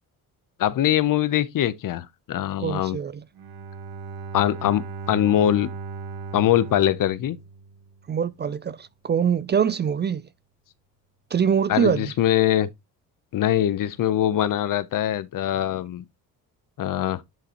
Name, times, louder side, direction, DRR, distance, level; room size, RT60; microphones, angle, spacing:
voice 1, 0.6-3.0 4.3-5.7 6.3-7.4 11.7-12.7 13.3-16.0 16.8-17.2, left 12 dB, 60° left, 0.8 m, -22 dB
voice 2, 2.6-3.2 8.1-10.2 11.3-12.1, right 7 dB, 30° right, 0.4 m, -24 dB
Bowed string instrument, 3.3-8.1, right 4 dB, 85° right, 1.2 m, -37 dB
10.5 x 3.8 x 3.0 m
cardioid pair, 85°, 36 cm